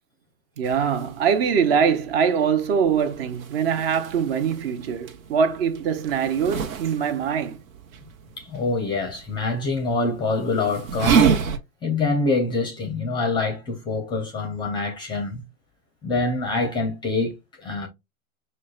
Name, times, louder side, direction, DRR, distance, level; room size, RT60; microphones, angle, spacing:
voice 1, 0.6-7.6, right 7 dB, 45° right, 0.7 m, -23 dB
sound 1, 0.6-11.6, right 6 dB, 70° right, 1.0 m, -29 dB
voice 2, 8.4-11.4 11.8-15.4 16.0-17.9, left 3 dB, 10° left, 0.5 m, -25 dB
6.3 x 2.2 x 2.3 m
hypercardioid pair, 125°, 43 cm